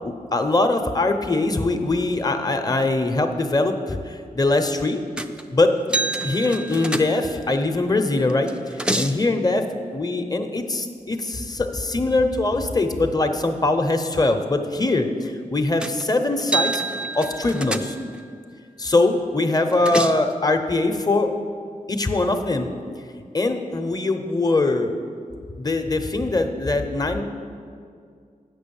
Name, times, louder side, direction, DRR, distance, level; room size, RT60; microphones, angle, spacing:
voice 1, 0.0-5.0 5.5-5.7 6.2-8.5 8.9-9.6 9.9-16.7 17.1-18.0 18.8-21.3 21.9-22.7 23.3-24.9 25.6-27.2, left 2 dB, 25° left, 6 dB, 0.7 m, -22 dB
sound 1, 5.2-5.5 5.9-7.5 8.3-9.2 15.8-16.0 16.4-18.2 19.5-20.3, right 2 dB, 5° right, 0.4 m, -28 dB
8.4 x 6.2 x 7.0 m, 2.2 s
wide cardioid pair, 95°, 14 cm